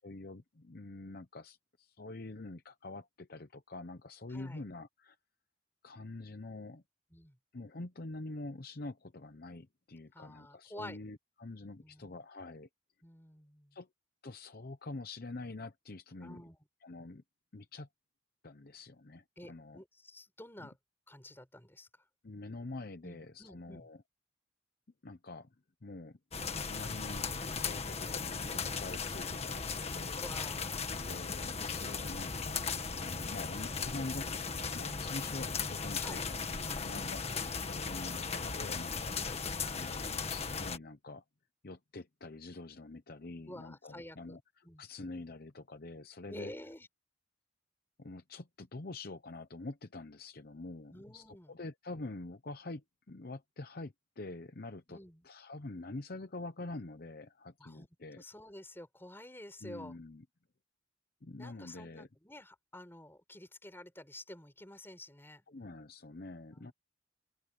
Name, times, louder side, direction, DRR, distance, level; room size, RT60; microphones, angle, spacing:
voice 1, 0.0-5.2 5.8-6.8 7.5-12.7 13.7-13.9 14.2-16.4 16.8-17.2 17.5-17.9 18.4-19.8 20.6-20.7 22.2-24.0 25.0-25.5 25.8-26.2 26.6-30.2 30.9-32.7 33.0-39.2 39.7-41.2 41.6-46.5 48.0-58.2 59.6-60.2 61.2-62.1 65.5-66.7, left 2 dB, 50° left, 0.8 m, -46 dB
voice 2, 4.3-4.6 7.1-7.4 10.1-11.0 11.8-12.2 13.0-13.8 16.2-16.6 19.4-20.7 21.1-21.9 23.0-23.9 30.1-31.2 36.0-36.3 37.0-37.2 39.2-39.5 43.4-44.4 44.6-44.8 46.3-46.9 50.9-51.6 54.9-55.2 57.6-57.9 58.2-60.0 61.4-65.4 66.5-66.7, left 1 dB, 10° left, 6.0 m, -50 dB
sound 1, 26.3-40.8, left 5 dB, 30° left, 1.7 m, -37 dB
open air
head